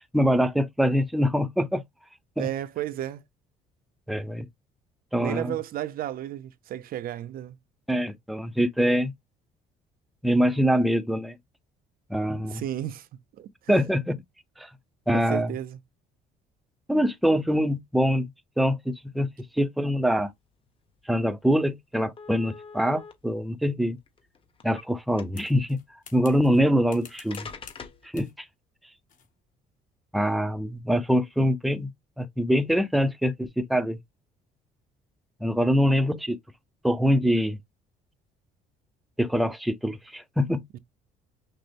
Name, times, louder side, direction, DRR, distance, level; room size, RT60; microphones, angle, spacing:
voice 1, 0.1-1.8 2.4-2.5 4.1-4.5 5.1-5.5 7.9-9.1 10.2-11.4 12.1-12.6 13.7-14.2 14.6-14.7 15.1-15.5 16.9-18.3 18.6-19.3 19.6-20.3 21.1-24.0 24.6-25.8 26.1-27.5 28.1-28.5 30.1-31.9 32.2-34.0 35.4-36.4 36.8-37.6 39.2-40.6, equal, ahead, 0.5 m, -24 dB
voice 2, 2.4-3.2 5.2-7.6 12.4-13.1 13.4-13.8 15.1-15.8 40.7-40.8, right 12 dB, 60° right, 0.5 m, -33 dB
sound 1, 21.1-21.2 21.5-21.6 22.2-23.1 24.0-24.8 25.2-25.6 26.7-26.8 27.3-28.1, left 5 dB, 30° left, 1.2 m, -43 dB
sound 2, 25.3-26.6 26.9-27.9 28.1-28.4 29.1-29.3, left 7 dB, 50° left, 1.7 m, -49 dB
6.0 x 2.0 x 3.4 m
cardioid pair, 110°, 17 cm